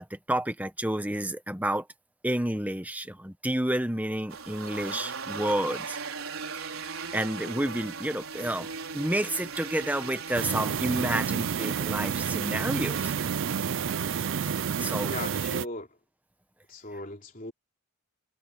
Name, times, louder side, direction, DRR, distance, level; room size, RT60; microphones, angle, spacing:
voice 1, 0.0-1.9 2.2-6.0 6.6-8.7 8.9-13.1 14.8-15.1, right 1 dB, 10° right, 1.3 m, -30 dB
sound 1, 4.3-15.4, right 5 dB, 85° right, 4.6 m, -38 dB
sound 2, 10.3-15.7, right 7 dB, 60° right, 0.4 m, -30 dB
voice 2, 15.1-16.0 16.7-17.5, left 2 dB, 40° left, 3.5 m, -38 dB
head